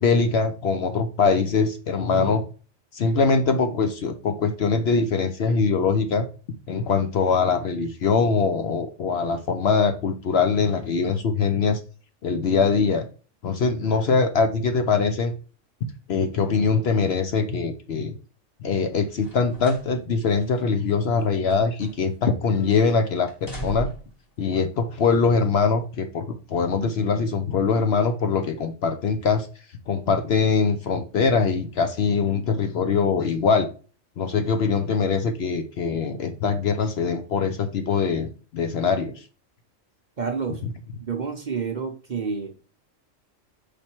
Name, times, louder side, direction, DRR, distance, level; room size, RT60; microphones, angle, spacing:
voice 1, 0.0-2.4 2.9-6.3 6.7-11.8 12.2-13.1 13.4-15.3 16.1-18.1 18.6-23.9 24.4-29.5 29.9-33.7 34.2-39.2, left 5 dB, 60° left, 7 dB, 0.8 m, -22 dB
sound 1, 19.1-19.9 20.3-20.4 21.2-22.2 22.5-22.9 23.3-24.2 25.1-25.2, right 2 dB, 15° left, 1.1 m, -38 dB
voice 2, 40.2-40.6 41.0-42.5, right 5 dB, 40° right, 4 dB, 0.7 m, -29 dB
5.1 x 4.3 x 4.4 m, 0.37 s
omnidirectional pair, 1.4 m